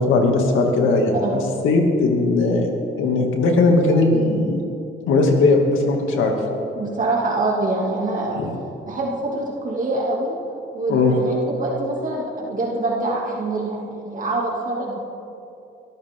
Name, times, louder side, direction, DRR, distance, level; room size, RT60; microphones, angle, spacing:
voice 1, 0.0-2.7 3.0-4.6 5.1-6.4 8.4-8.5 10.9-11.1, left 3 dB, 85° left, 2 dB, 2.5 m, -18 dB
voice 2, 6.8-8.4 8.9-10.4 10.7-15.0, right 2 dB, 40° right, -2 dB, 2.6 m, -25 dB
23.5 x 14.0 x 3.8 m, 2.7 s
cardioid pair, 90°, 20 cm